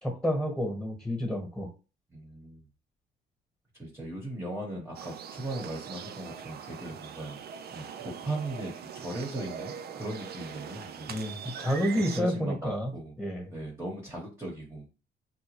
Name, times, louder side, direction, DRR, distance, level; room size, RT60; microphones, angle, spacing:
voice 1, 0.0-1.7 11.1-12.9 13.2-13.5, equal, 5° left, 2 dB, 1.2 m, -29 dB
voice 2, 2.1-2.7 3.8-7.4 7.7-11.1 11.9-13.1 13.5-14.9, right 1 dB, 10° right, -2 dB, 0.9 m, -38 dB
sound 1, 4.9-12.2, right 8 dB, 55° right, 0.4 m, -42 dB
3.9 x 2.2 x 3.1 m, 0.33 s
cardioid pair, 90°, 20 cm